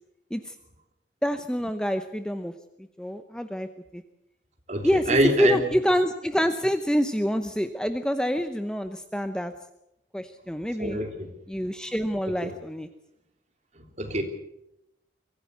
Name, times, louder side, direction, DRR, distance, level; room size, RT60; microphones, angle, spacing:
voice 1, 1.2-2.5 3.0-4.0 4.8-9.5 10.1-11.0 11.5-12.9, equal, 5° left, 8 dB, 0.8 m, -27 dB
voice 2, 4.7-5.6 10.8-11.1 12.4-12.5 14.0-14.2, right 1 dB, 35° right, 4 dB, 3.2 m, -24 dB
23.5 x 15.0 x 8.2 m, 0.85 s
head